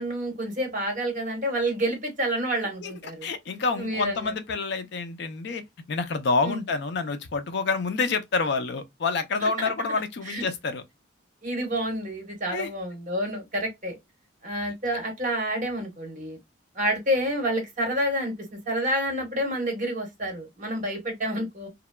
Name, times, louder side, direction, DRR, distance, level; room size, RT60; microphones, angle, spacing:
voice 1, 0.0-3.3 3.8-4.3 6.4-6.6 9.4-9.5 10.3-10.4 11.4-14.0 14.4-16.4 16.7-18.3 18.6-21.7, right 1 dB, 40° right, 1.1 m, -28 dB
voice 2, 3.2-5.6 5.9-10.8 12.5-12.7, left 4 dB, 55° left, 0.4 m, -28 dB
2.9 x 2.1 x 2.2 m
head